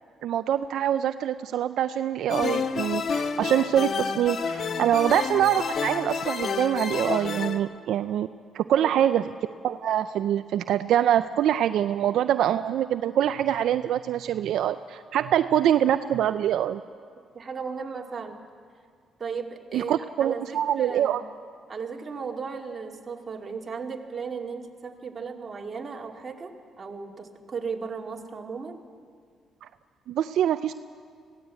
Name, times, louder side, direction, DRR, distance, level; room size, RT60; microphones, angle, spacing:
voice 1, 0.2-8.3 8.5-9.3 9.6-16.8 19.7-21.2 29.6-29.7 30.1-30.7, right 10 dB, 75° right, 10 dB, 0.4 m, -24 dB
sound 1, 2.3-7.6, left 5 dB, 55° left, 1.0 m, -29 dB
voice 2, 17.3-18.4 19.2-21.2 21.7-28.8, right 5 dB, 35° right, 1 dB, 2.4 m, -36 dB
21.0 x 16.5 x 8.3 m, 2.1 s
cardioid pair, 90°, 0 cm